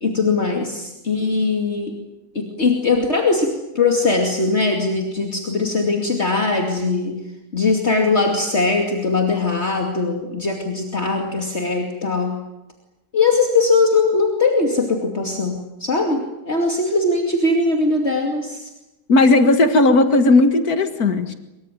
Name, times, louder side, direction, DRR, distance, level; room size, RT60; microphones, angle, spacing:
voice 1, 0.0-1.9 2.3-7.2 7.5-12.4 13.1-18.7 20.3-20.4, left 3 dB, 45° left, 2 dB, 2.9 m, -20 dB
voice 2, 19.1-21.3, left 2 dB, 75° left, 8 dB, 2.3 m, -15 dB
24.5 x 23.5 x 9.2 m, 0.96 s
omnidirectional pair, 1.6 m